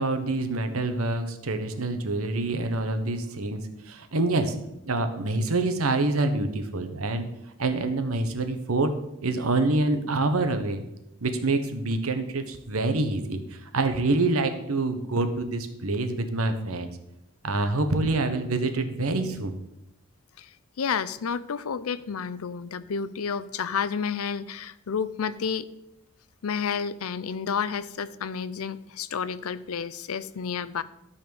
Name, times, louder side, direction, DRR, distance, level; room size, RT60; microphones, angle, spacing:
voice 1, 0.0-4.5 4.9-7.3 7.6-8.9 9.2-10.8 11.2-16.9 17.4-19.6, right 2 dB, 80° right, 8 dB, 1.2 m, -26 dB
voice 2, 20.8-25.7 26.4-30.8, left 6 dB, 80° left, 16 dB, 0.5 m, -30 dB
12.5 x 4.3 x 7.0 m, 0.87 s
head